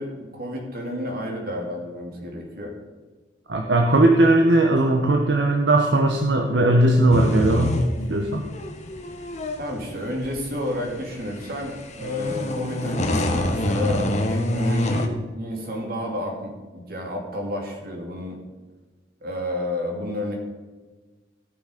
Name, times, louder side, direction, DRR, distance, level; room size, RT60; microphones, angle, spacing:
voice 1, 0.0-2.7 9.6-18.4 19.2-20.4, left 1 dB, 50° right, 1 dB, 2.5 m, -31 dB
voice 2, 3.5-7.8 8.1-8.5, right 1 dB, 70° right, 2 dB, 1.0 m, -18 dB
sound 1, 7.1-15.1, left 1 dB, 40° left, 1.1 m, -26 dB
17.0 x 6.2 x 5.0 m, 1.3 s
head